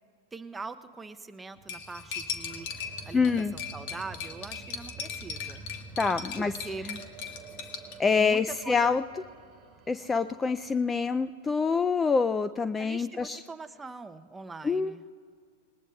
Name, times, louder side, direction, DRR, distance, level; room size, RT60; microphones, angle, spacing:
voice 1, 0.3-5.6 6.4-7.0 8.2-9.0 12.8-15.0, right 4 dB, 10° right, 9 dB, 0.6 m, -42 dB
sound 1, 1.6-11.3, right 4 dB, 40° right, 1.4 m, -49 dB
Cutlery silverware, 1.7-8.0, left 7 dB, 60° left, 1.3 m, -38 dB
voice 2, 3.1-3.5 6.0-6.5 8.0-9.0 9.9-13.4 14.6-15.0, left 5 dB, 15° left, 13 dB, 0.3 m, -26 dB
20.0 x 19.0 x 2.3 m, 2.2 s
hypercardioid pair, 115°, 0 cm